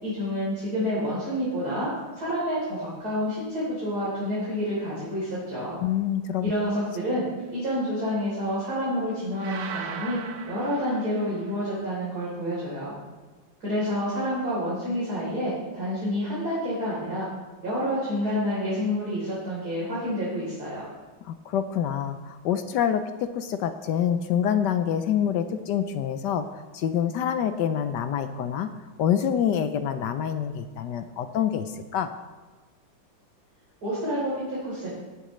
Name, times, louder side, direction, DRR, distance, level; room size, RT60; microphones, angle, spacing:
voice 1, 0.0-1.9 2.2-5.8 6.4-7.3 7.5-13.0 13.6-17.3 17.6-20.9 33.8-34.9, equal, 50° right, -9 dB, 4.0 m, -28 dB
voice 2, 5.8-6.5 21.3-26.4 26.7-28.7 29.0-32.1, left 9 dB, 70° left, 9 dB, 1.2 m, -26 dB
sound 1, 9.4-11.7, right 7 dB, 70° right, 1.4 m, -38 dB
18.0 x 10.5 x 3.2 m, 1.3 s
omnidirectional pair, 2.1 m